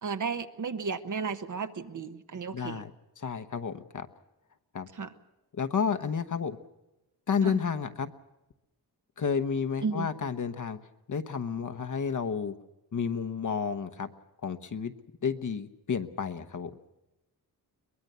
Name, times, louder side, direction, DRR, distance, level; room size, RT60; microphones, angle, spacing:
voice 1, 0.0-2.8 4.9-5.1 7.4-7.6 9.8-10.1, right 5 dB, 55° right, 10 dB, 1.2 m, -34 dB
voice 2, 2.5-2.9 3.2-4.1 4.7-4.9 5.6-6.6 7.3-8.1 9.2-10.8 11.1-12.5 12.9-14.1 14.4-14.9 15.2-16.7, left 6 dB, 55° left, 10 dB, 1.1 m, -31 dB
23.0 x 20.5 x 6.8 m, 0.97 s
wide cardioid pair, 125°, 37 cm